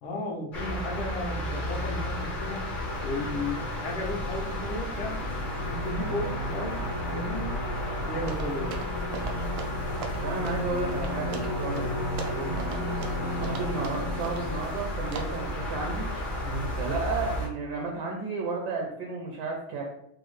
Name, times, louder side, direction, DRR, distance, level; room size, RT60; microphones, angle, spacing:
voice 1, 0.0-2.7 3.0-7.6 8.1-8.8 12.3-12.6 16.4-16.7, left 1 dB, 80° left, 0 dB, 1.6 m, -35 dB
sound 1, 0.5-17.5, left 1 dB, 60° left, 0.5 m, -33 dB
sound 2, 5.0-16.0, left 1 dB, 40° right, 0.6 m, -36 dB
sound 3, 8.3-14.9 15.1-15.5, right 5 dB, 90° right, 1.5 m, -41 dB
voice 2, 10.2-11.9 13.3-16.1 16.8-19.8, right 3 dB, 70° right, 0 dB, 1.0 m, -32 dB
5.2 x 2.0 x 3.1 m, 0.76 s
omnidirectional pair, 2.3 m